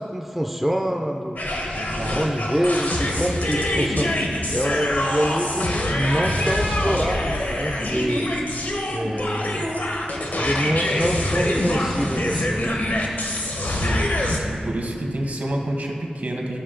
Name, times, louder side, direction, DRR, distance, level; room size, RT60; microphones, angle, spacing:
voice 1, 0.0-1.4 2.1-4.2 4.5-8.3 8.9-9.7 10.3-12.8, equal, 5° right, 2 dB, 0.4 m, -25 dB
sound 1, 1.4-14.4, left 1 dB, 70° left, 1.0 m, -25 dB
voice 2, 1.8-2.2 13.6-14.1 14.4-16.6, right 1 dB, 60° right, 1 dB, 1.1 m, -29 dB
11.5 x 4.8 x 3.8 m, 2.5 s
wide cardioid pair, 60°, 3 cm